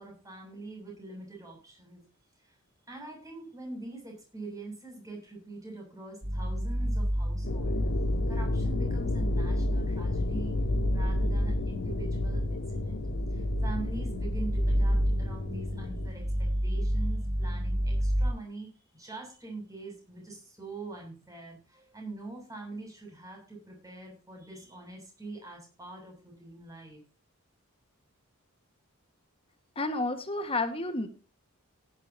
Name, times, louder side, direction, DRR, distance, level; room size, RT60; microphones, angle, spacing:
voice 1, 0.0-2.0 2.4-2.5 2.9-7.8 8.3-10.6 10.8-13.0 13.3-27.0, right 2 dB, 15° right, 1 dB, 7.5 m, -44 dB
sound 1, 6.2-18.3, equal, 60° right, 3.3 m, -29 dB
sound 2, 7.4-16.1, left 4 dB, 50° left, 0.5 m, -34 dB
voice 2, 29.8-31.1, left 2 dB, 25° left, 8 dB, 1.7 m, -30 dB
18.0 x 11.0 x 2.9 m, 0.34 s
head